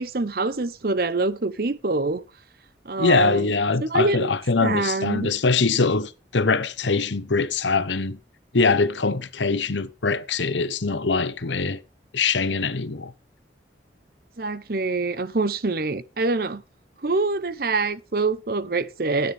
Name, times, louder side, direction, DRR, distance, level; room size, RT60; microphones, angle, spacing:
voice 1, 0.0-2.2 2.8-3.5 3.8-4.3 4.6-5.3 14.4-16.6 17.0-19.3, right 3 dB, 55° right, 0.8 m, -25 dB
voice 2, 3.0-8.2 8.5-11.8 12.1-13.1, left 4 dB, 85° left, 1.0 m, -23 dB
13.0 x 9.6 x 3.5 m
head